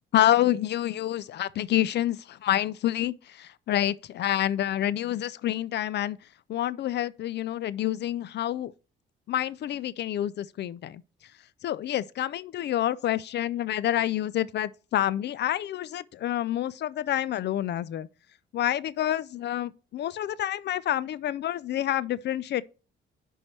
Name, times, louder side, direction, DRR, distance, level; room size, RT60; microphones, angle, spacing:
voice 1, 0.1-6.2 6.5-8.7 9.3-11.0 11.6-18.1 18.5-22.6, left 12 dB, 60° left, 0.4 m, -28 dB
10.5 x 4.6 x 3.2 m
cardioid pair, 90°, 20 cm